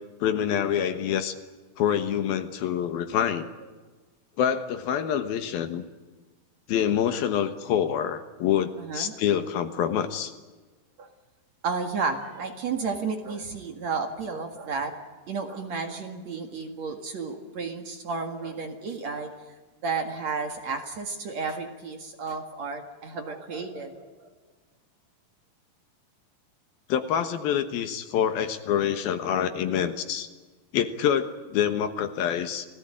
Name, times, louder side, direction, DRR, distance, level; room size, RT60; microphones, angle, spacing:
voice 1, 0.2-1.3 1.8-3.5 4.4-5.8 6.7-10.3 26.9-30.3 30.7-32.7, left 9 dB, 70° left, 9 dB, 2.9 m, -26 dB
voice 2, 8.8-9.1 11.0-11.1 11.6-14.9 15.3-19.3 19.8-24.3, right 4 dB, 50° right, 5 dB, 2.6 m, -32 dB
28.5 x 18.0 x 8.9 m, 1.3 s
omnidirectional pair, 4.8 m